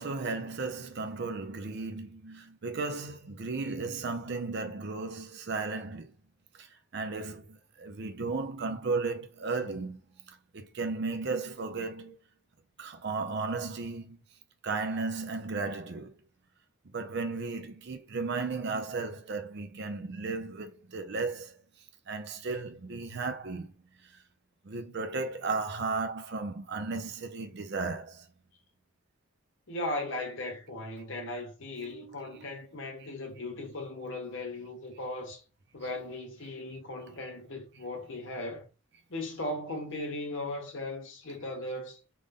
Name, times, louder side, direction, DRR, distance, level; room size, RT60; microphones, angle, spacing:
voice 1, 0.0-6.1 6.6-6.7 6.9-10.0 10.3-12.2 12.8-14.2 14.6-16.1 16.9-21.5 22.1-23.7 24.6-28.3 31.9-32.5 35.8-35.9, right 3 dB, 50° right, 0.5 m, -35 dB
voice 2, 29.7-35.4 35.7-38.7 39.1-42.0, left 1 dB, 60° left, 1.0 m, -37 dB
3.5 x 2.6 x 3.5 m
head